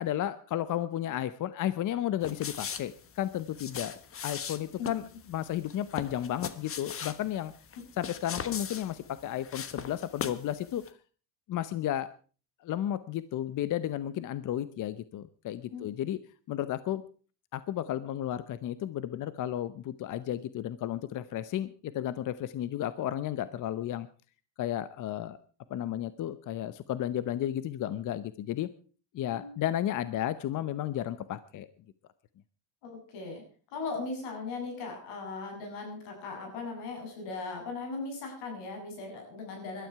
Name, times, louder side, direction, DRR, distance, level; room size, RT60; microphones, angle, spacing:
voice 1, 0.0-4.0 4.2-7.5 8.0-10.8 11.5-12.1 12.6-16.2 16.5-17.0 17.5-24.1 24.6-25.4 25.7-28.7 29.1-31.7, left 12 dB, 50° left, 15 dB, 0.8 m, -33 dB
sound 1, 2.2-10.5 10.8-10.9, left 7 dB, 35° left, 1.3 m, -40 dB
voice 2, 32.8-33.4 33.7-39.9, left 3 dB, 90° left, 3 dB, 7.9 m, -38 dB
20.5 x 12.5 x 4.7 m, 0.38 s
cardioid pair, 120°, 40 cm